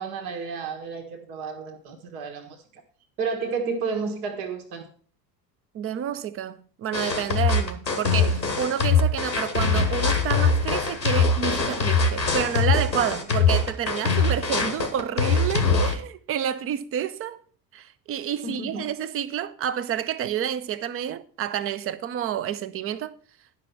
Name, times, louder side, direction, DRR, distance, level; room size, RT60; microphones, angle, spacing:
voice 1, 0.0-2.8 3.2-4.9 18.4-18.8, right 5 dB, 60° right, 1.5 m, -31 dB
voice 2, 5.7-17.4 17.7-23.1, right 10 dB, 30° right, 0.6 m, -29 dB
sound 1, 6.9-15.9, left 4 dB, 90° left, 1.2 m, -22 dB
10.5 x 5.8 x 5.8 m
figure-of-eight pair, 65°, 50 cm